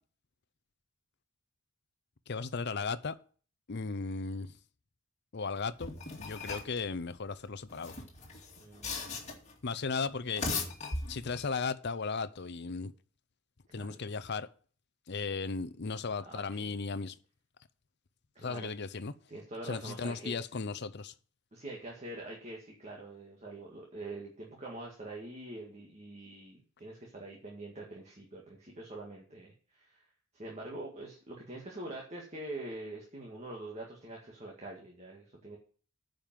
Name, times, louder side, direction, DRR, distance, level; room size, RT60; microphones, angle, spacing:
voice 1, 2.3-3.1 3.7-4.5 5.3-5.9 6.2-8.0 9.6-10.5 11.1-12.9 13.7-14.5 15.1-17.1 18.4-19.1 19.6-21.1, left 4 dB, 55° left, 0.6 m, -36 dB
sound 1, 5.8-6.8 7.7-9.5 10.2-11.5, left 3 dB, 30° left, 2.2 m, -38 dB
voice 2, 8.6-9.2 13.7-14.1 16.2-16.7 18.4-18.7 19.3-20.4 21.5-30.0 30.3-35.6, right 2 dB, 30° right, 1.8 m, -45 dB
9.7 x 5.3 x 7.4 m
head